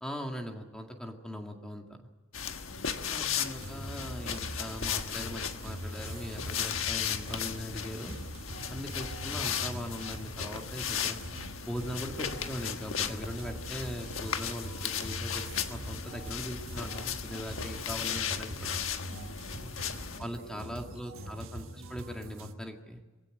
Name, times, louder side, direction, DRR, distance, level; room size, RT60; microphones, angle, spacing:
voice 1, 0.0-2.1 3.1-8.1 8.7-11.2 11.7-18.8 20.2-23.0, equal, 5° left, 3 dB, 2.1 m, -40 dB
sound 1, 2.3-20.2, left 8 dB, 80° left, 1.4 m, -36 dB
voice 2, 2.7-3.2 8.6-9.0 19.1-19.8 20.1-21.4, left 2 dB, 50° left, 6 dB, 5.1 m, -53 dB
sound 2, 3.6-22.5, right 1 dB, 85° right, 1.5 m, -43 dB
23.0 x 16.0 x 9.2 m, 1.2 s
head